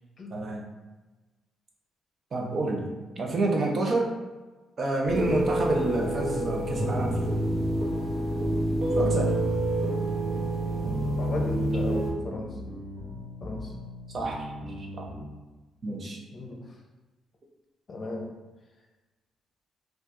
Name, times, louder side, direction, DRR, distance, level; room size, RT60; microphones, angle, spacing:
voice 1, 0.3-0.7 2.3-2.9 3.2-4.1 4.8-7.3 9.0-9.3 14.1-15.0 15.8-16.2, right 2 dB, 45° right, -1 dB, 0.7 m, -29 dB
sound 1, 5.1-12.1, right 1 dB, 70° right, 0.9 m, -27 dB
sound 2, 5.8-15.3, equal, 5° left, 1.1 m, -40 dB
voice 2, 11.2-12.5 13.4-13.7 16.3-16.6 17.9-18.3, left 2 dB, 40° left, 0 dB, 0.7 m, -36 dB
4.4 x 2.4 x 2.6 m, 1.2 s
cardioid pair, 90°, 0 cm